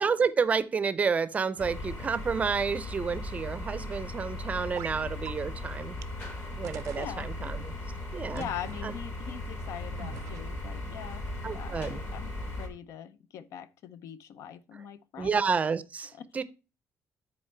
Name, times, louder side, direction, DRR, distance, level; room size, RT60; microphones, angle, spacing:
voice 1, 0.0-6.0 6.6-7.6 8.1-8.5 8.8-8.9 11.4-12.0 15.2-16.4, right 5 dB, 25° right, 0.5 m, -30 dB
sound 1, 1.6-12.7, left 1 dB, 45° left, 1.7 m, -38 dB
sound 2, 4.7-5.0 5.2-5.3 6.0-6.1 6.6-7.1 8.4-8.8 10.0-10.7, right 13 dB, 85° right, 0.5 m, -43 dB
voice 2, 7.0-7.5 8.3-15.4 16.1-16.3, left 9 dB, 70° left, 0.6 m, -42 dB
9.7 x 4.3 x 4.3 m
cardioid pair, 150°, 5 cm